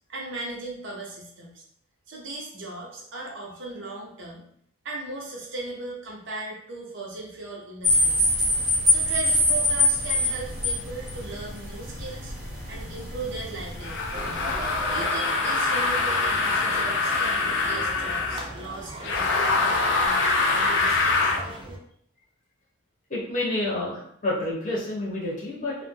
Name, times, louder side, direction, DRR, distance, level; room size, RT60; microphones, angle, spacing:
voice 1, 0.1-1.6 2.1-4.5 4.8-8.3 8.9-12.3 12.7-14.0 14.9-21.3, right 2 dB, 65° right, -2 dB, 0.7 m, -37 dB
sound 1, 7.8-15.0, left 1 dB, 45° right, 1.1 m, -25 dB
sound 2, 13.8-18.5 19.0-21.4, left 3 dB, 65° left, 0.4 m, -24 dB
sound 3, 14.1-21.8, right 2 dB, 25° right, 0.4 m, -38 dB
voice 2, 23.1-25.7, left 2 dB, 40° left, -6 dB, 1.1 m, -29 dB
2.2 x 2.1 x 3.1 m, 0.67 s
head